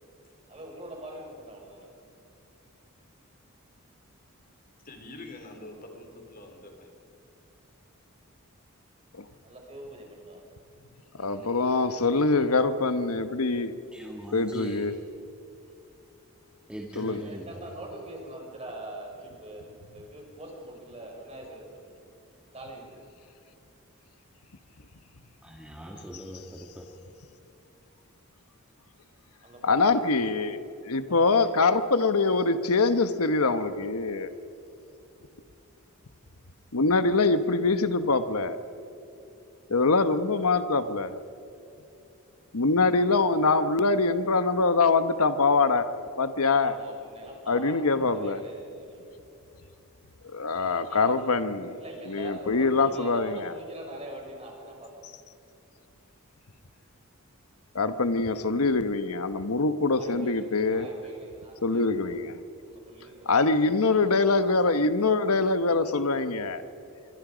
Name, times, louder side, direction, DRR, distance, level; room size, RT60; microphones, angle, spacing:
voice 1, 0.5-1.9 9.4-10.4 17.1-22.0 22.5-23.0 29.4-30.6 31.1-31.5 46.6-49.0 50.9-51.1 51.8-54.9 60.0-62.2 62.6-63.7 64.0-64.2, right 1 dB, 30° right, 0 dB, 5.7 m, -44 dB
voice 2, 4.8-6.9, left 2 dB, 40° left, 3 dB, 3.7 m, -45 dB
voice 3, 11.2-13.7 14.3-14.9 17.0-17.2 29.6-30.6 30.8-34.3 36.7-38.6 39.7-41.2 42.5-45.9 46.2-46.8 47.5-48.4 50.3-51.8 52.1-53.5 57.7-60.9 61.6-62.4 63.3-66.6, left 3 dB, 85° left, 11 dB, 1.1 m, -24 dB
voice 4, 13.9-14.9 16.7-17.7 25.4-26.9, right 1 dB, 5° right, -1 dB, 1.8 m, -41 dB
26.5 x 24.0 x 5.1 m, 2.7 s
head